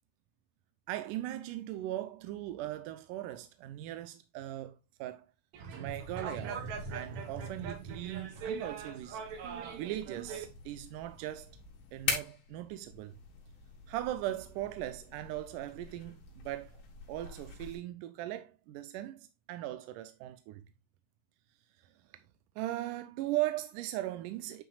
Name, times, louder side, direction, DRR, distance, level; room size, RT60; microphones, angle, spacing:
voice 1, 0.9-5.3 5.7-9.2 9.8-11.6 11.9-13.2 13.9-16.8 17.1-20.6 21.8-21.9 22.6-24.6, right 14 dB, 80° right, 1.9 m, -39 dB
sound 1, 5.5-10.4, right 6 dB, 65° right, 2.1 m, -41 dB
sound 2, 5.9-17.8, left 6 dB, 75° left, 3.5 m, -44 dB
9.1 x 5.2 x 2.3 m
omnidirectional pair, 4.2 m